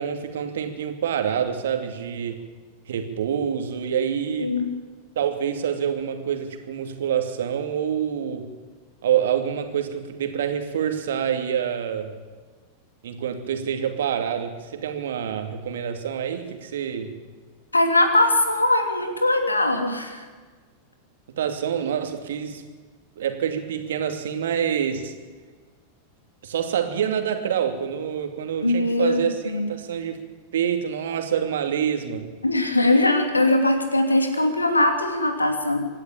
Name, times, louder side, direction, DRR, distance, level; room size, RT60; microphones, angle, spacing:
voice 1, 0.0-2.4 2.9-4.5 5.2-8.5 9.0-12.1 13.0-17.1 21.4-22.6 23.2-25.1 26.4-30.2 30.5-32.3, right 8 dB, 60° right, 6 dB, 2.6 m, -26 dB
voice 2, 4.4-4.7 17.7-20.2 28.6-29.7 32.4-35.9, left 2 dB, 80° left, 6 dB, 2.8 m, -21 dB
26.5 x 11.5 x 8.7 m, 1.4 s
figure-of-eight pair, 90°, 0 cm